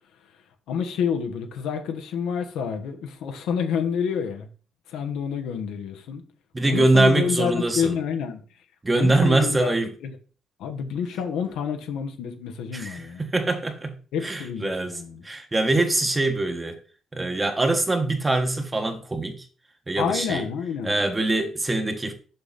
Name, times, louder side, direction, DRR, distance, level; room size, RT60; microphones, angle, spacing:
voice 1, 0.7-4.5 4.9-6.2 6.6-8.4 8.9-9.7 10.0-10.2 10.6-13.2 14.1-15.2 20.0-21.0, left 7 dB, 85° left, 1.2 m, -28 dB
voice 2, 6.5-8.0 8.8-9.9 12.7-13.9 14.2-15.0 15.2-16.8 17.1-19.4 19.9-20.5 20.8-22.1, right 2 dB, 20° right, 1.4 m, -23 dB
6.8 x 5.7 x 4.1 m
cardioid pair, 90°, 0 cm